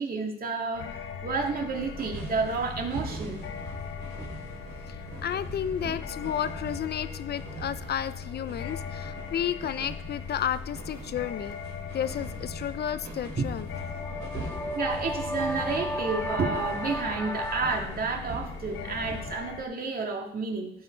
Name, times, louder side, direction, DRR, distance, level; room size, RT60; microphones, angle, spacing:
voice 1, 0.0-3.4 13.4-13.5 14.7-20.7, right 4 dB, 50° right, 1 dB, 2.5 m, -30 dB
sound 1, 0.7-19.6, left 7 dB, 80° left, 1.1 m, -40 dB
sound 2, 1.7-19.3, right 4 dB, 80° right, 3.4 m, -43 dB
voice 2, 4.9-11.6 11.9-13.7 14.3-14.8, left 9 dB, 55° left, 13 dB, 0.7 m, -32 dB
sound 3, 13.6-17.8, equal, 10° left, 1.8 m, -34 dB
15.5 x 5.3 x 4.6 m, 0.77 s
cardioid pair, 90°, 20 cm